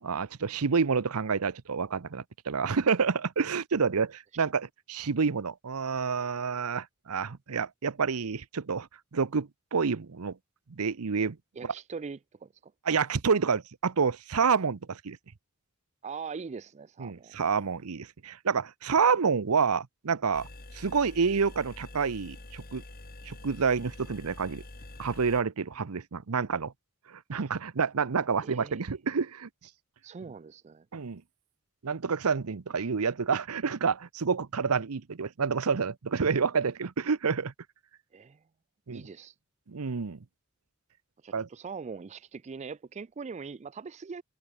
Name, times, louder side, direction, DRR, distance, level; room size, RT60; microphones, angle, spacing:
voice 1, 0.0-10.4 10.7-11.4 11.6-11.7 12.9-15.2 17.0-20.5 20.7-22.8 23.3-24.6 25.0-26.7 27.1-29.5 30.9-31.2 31.8-37.5 38.9-39.1 39.7-40.2 41.3-41.5, right 5 dB, 75° right, 0.7 m, -28 dB
voice 2, 11.6-12.7 16.0-17.4 28.4-28.8 30.0-30.9 38.1-38.4 38.9-39.3 41.2-44.2, right 5 dB, 30° right, 0.3 m, -41 dB
sound 1, 20.3-25.4, left 2 dB, 40° left, 2.3 m, -46 dB
head